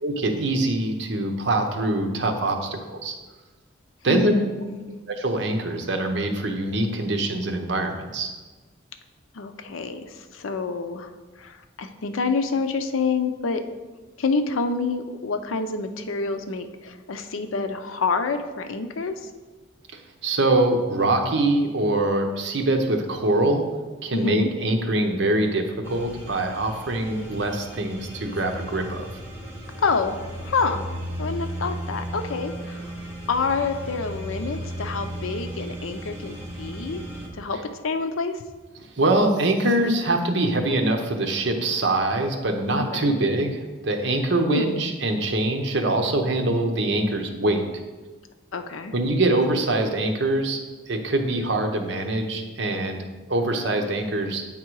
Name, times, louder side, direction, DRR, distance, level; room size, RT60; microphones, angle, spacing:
voice 1, 0.0-3.1 4.0-4.3 5.1-8.3 19.9-23.7 24.0-29.1 38.9-47.6 48.9-50.6 50.9-53.0 53.3-54.4, right 2 dB, 60° right, 4 dB, 0.8 m, -24 dB
voice 2, 4.1-4.9 9.3-11.1 11.4-13.6 14.2-19.1 24.1-24.5 29.8-30.9 31.2-32.9 33.3-37.0 37.4-38.4 42.9-43.2 44.5-44.8 48.5-48.9, left 4 dB, 90° left, 8 dB, 0.6 m, -27 dB
sound 1, 25.8-37.3, equal, 10° right, 1.0 m, -35 dB
8.8 x 3.7 x 4.7 m, 1.3 s
head